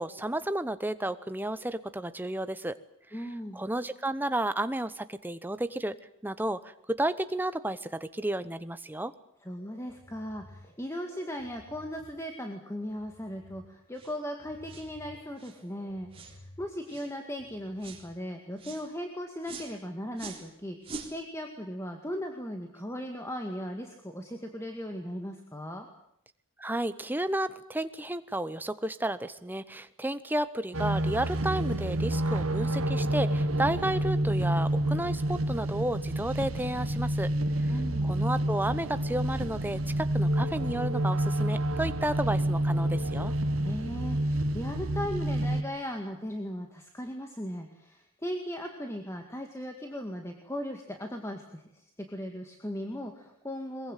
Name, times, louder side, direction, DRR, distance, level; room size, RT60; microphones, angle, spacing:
voice 1, 0.0-2.8 3.1-3.2 3.5-6.0 6.2-9.1 26.6-37.3 37.6-37.7 38.0-43.3, right 1 dB, 10° right, 12 dB, 0.9 m, -32 dB
voice 2, 3.1-3.6 9.4-25.9 37.7-38.1 43.6-51.8 52.1-53.9, equal, 15° left, 4 dB, 2.0 m, -38 dB
sound 1, 9.6-18.2, equal, 30° left, 4.3 m, -55 dB
sound 2, 13.9-14.2 14.7-14.9 15.4-15.6 16.1-16.4 16.9-17.1 17.8-18.1 18.6-18.9 19.4-19.7 20.1-20.5 20.8-21.1, right 4 dB, 25° right, 3.9 m, -43 dB
sound 3, 30.7-45.6, right 1 dB, 80° right, 1.8 m, -28 dB
22.5 x 22.0 x 9.1 m, 0.73 s
head